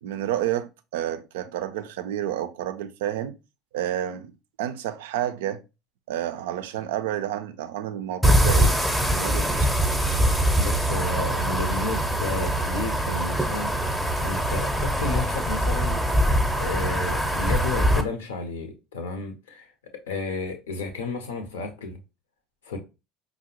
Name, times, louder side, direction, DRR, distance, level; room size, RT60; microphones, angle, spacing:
voice 1, 0.0-3.4 3.7-4.3 4.6-5.6 6.1-8.8 9.1-9.7, right 11 dB, 70° right, 0.3 m, -30 dB
sound 1, 8.2-18.0, equal, ahead, 0.6 m, -23 dB
voice 2, 10.6-13.7 14.2-16.0 16.6-19.7 20.1-22.0 22.7-22.8, left 3 dB, 75° left, 0.6 m, -32 dB
4.9 x 2.0 x 2.8 m
figure-of-eight pair, 65°, 0 cm